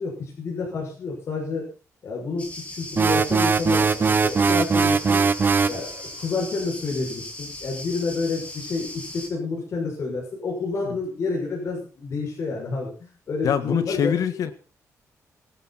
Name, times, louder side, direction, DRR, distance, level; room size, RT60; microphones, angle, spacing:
voice 1, 0.0-1.7 2.0-5.2 5.7-14.1, left 4 dB, 50° left, -2 dB, 6.6 m, -29 dB
sound 1, 2.4-9.3, left 1 dB, 20° left, 5.0 m, -38 dB
sound 2, 3.0-5.8, right 5 dB, 35° right, 0.8 m, -20 dB
voice 2, 13.4-14.5, left 8 dB, 75° left, 11 dB, 1.7 m, -24 dB
23.5 x 11.0 x 4.3 m, 0.38 s
cardioid pair, 110°, 6 cm